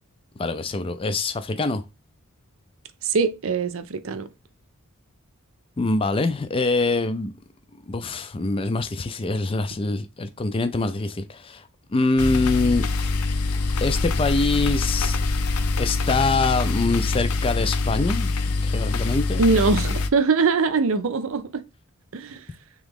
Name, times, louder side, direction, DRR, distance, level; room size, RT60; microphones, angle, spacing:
voice 1, 0.4-1.8 5.8-7.3 7.9-11.6 11.9-12.8 13.8-15.2 15.8-18.3 18.6-19.5, left 3 dB, 25° left, 0.4 m, -24 dB
voice 2, 3.0-4.3 19.4-21.6 22.1-22.4, right 4 dB, 65° right, 0.5 m, -22 dB
sound 1, 12.2-20.1, left 3 dB, 85° left, 0.5 m, -24 dB
3.7 x 3.0 x 3.5 m
head